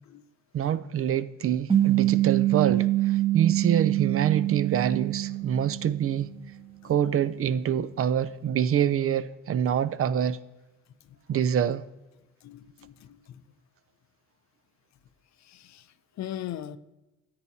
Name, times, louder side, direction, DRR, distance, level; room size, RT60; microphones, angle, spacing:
voice 1, 0.5-6.3 6.8-10.4 11.3-11.8, right 9 dB, 50° right, 0.5 m, -26 dB
sound 1, 1.7-6.3, right 14 dB, 20° right, 1.2 m, -25 dB
voice 2, 12.4-13.4 15.5-15.8 16.2-16.8, left 11 dB, 65° left, 0.6 m, -39 dB
13.5 x 8.7 x 2.8 m
cardioid pair, 90°, 30 cm